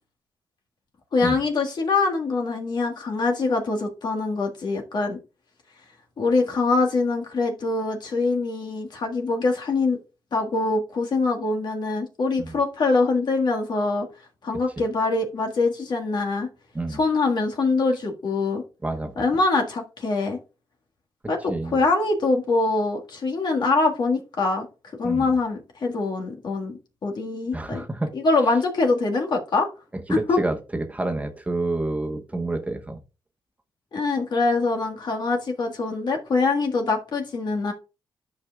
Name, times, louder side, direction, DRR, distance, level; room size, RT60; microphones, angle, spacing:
voice 1, 1.1-5.2 6.2-10.0 10.3-14.1 14.4-16.5 16.9-18.6 19.2-20.4 21.3-24.7 25.0-26.7 27.0-27.8 28.1-29.7 30.1-30.4 33.9-37.7, left 3 dB, 60° left, 1.7 m, -24 dB
voice 2, 18.8-19.2 21.5-21.8 25.0-25.3 27.5-28.1 29.9-33.0, right 2 dB, 15° right, 1.1 m, -28 dB
12.5 x 5.3 x 2.4 m
cardioid pair, 80°, 9 cm